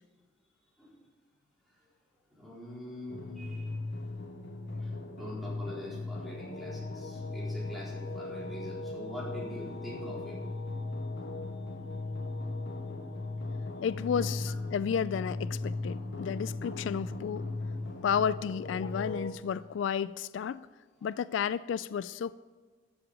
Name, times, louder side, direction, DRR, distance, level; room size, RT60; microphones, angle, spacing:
voice 1, 2.3-3.8 4.8-10.4, equal, ahead, 4.1 m, -44 dB
sound 1, 3.1-19.3, left 2 dB, 70° left, 1.5 m, -38 dB
voice 2, 13.8-17.5 18.0-20.7 21.0-22.3, left 7 dB, 85° left, 0.3 m, -32 dB
13.5 x 7.7 x 5.2 m
head